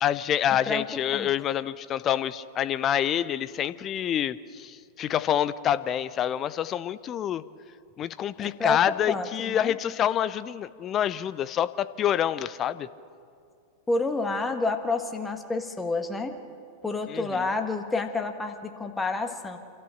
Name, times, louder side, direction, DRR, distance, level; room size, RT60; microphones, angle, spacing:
voice 1, 0.0-7.4 8.0-12.9 17.1-17.5, left 10 dB, 30° left, 15 dB, 0.6 m, -27 dB
voice 2, 8.4-9.7 13.9-16.4 16.8-19.6, left 3 dB, 10° left, 5 dB, 1.7 m, -29 dB
27.5 x 13.5 x 7.4 m, 2.3 s
figure-of-eight pair, 90°, 0 cm